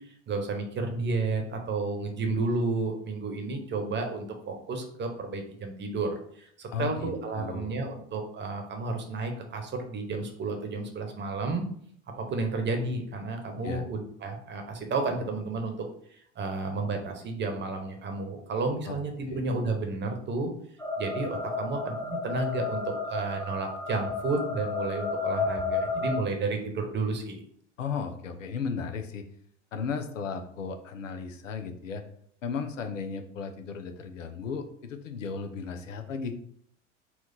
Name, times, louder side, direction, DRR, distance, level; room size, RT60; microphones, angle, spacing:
voice 1, 0.3-11.6 12.2-15.7 16.1-20.5 21.0-27.4, right 3 dB, 30° right, 4 dB, 1.0 m, -32 dB
voice 2, 6.7-7.8 13.6-13.9 18.9-19.4 27.8-29.3 29.7-32.0 32.4-36.3, left 5 dB, 85° left, 7 dB, 0.6 m, -35 dB
sound 1, 20.8-26.2, left 4 dB, 10° left, 1.2 m, -32 dB
4.3 x 2.4 x 4.1 m, 0.65 s
hypercardioid pair, 80°, 37 cm